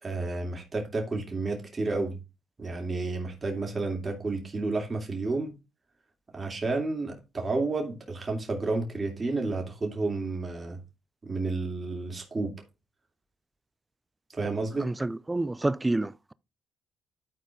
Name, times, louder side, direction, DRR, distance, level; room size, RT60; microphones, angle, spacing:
voice 1, 0.0-2.2 2.6-5.5 6.3-10.8 11.2-12.5 14.3-14.9, right 3 dB, 35° right, 3.0 m, -31 dB
voice 2, 14.8-16.3, right 2 dB, 20° right, 0.5 m, -28 dB
12.5 x 4.5 x 3.6 m
supercardioid pair, 55°, 0 cm